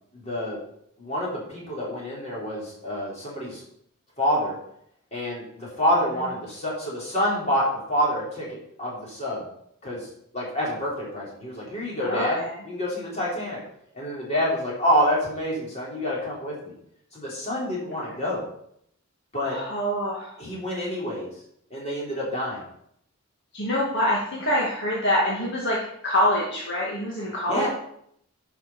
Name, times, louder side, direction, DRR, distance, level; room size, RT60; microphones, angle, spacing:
voice 1, 0.1-0.6 1.0-3.6 4.2-4.5 5.1-8.5 8.8-9.5 9.8-10.1 10.3-13.6 13.9-16.7 17.1-18.5 19.3-19.6 20.4-21.3 21.7-22.6 27.5-27.7, equal, 30° left, -5 dB, 4.4 m, -27 dB
voice 2, 12.0-12.5 19.4-20.3 23.5-25.8 26.0-27.7, left 1 dB, 55° left, -4 dB, 2.1 m, -25 dB
11.0 x 5.7 x 5.9 m, 0.71 s
head